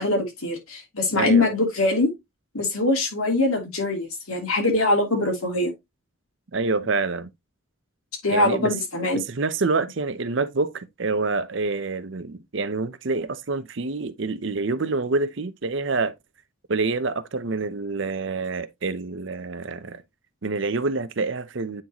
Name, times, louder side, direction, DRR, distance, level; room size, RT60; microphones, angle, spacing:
voice 1, 0.0-2.1 2.5-5.7 8.2-9.2, left 2 dB, 90° left, 2.7 m, -23 dB
voice 2, 1.1-1.5 6.5-7.3 8.3-8.7 9.1-16.1 16.7-20.0 20.4-21.8, right 3 dB, 60° right, 0.7 m, -27 dB
8.9 x 3.9 x 2.9 m
head